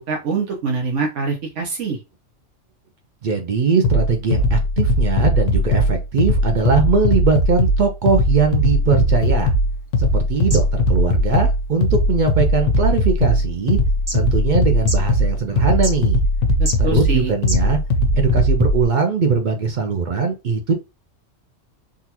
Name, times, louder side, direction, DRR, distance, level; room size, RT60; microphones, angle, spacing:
voice 1, 0.0-2.0 16.6-17.3, right 4 dB, 75° right, 1 dB, 1.1 m, -24 dB
voice 2, 3.2-9.5 10.0-13.8 14.1-16.2 16.8-17.8 18.1-20.7, right 5 dB, 60° right, 5 dB, 0.5 m, -20 dB
sound 1, 3.8-18.9, left 1 dB, 85° left, 1.0 m, -19 dB
sound 2, 8.8-18.1, right 1 dB, 20° right, 0.7 m, -37 dB
3.8 x 2.3 x 2.8 m, 0.27 s
omnidirectional pair, 1.3 m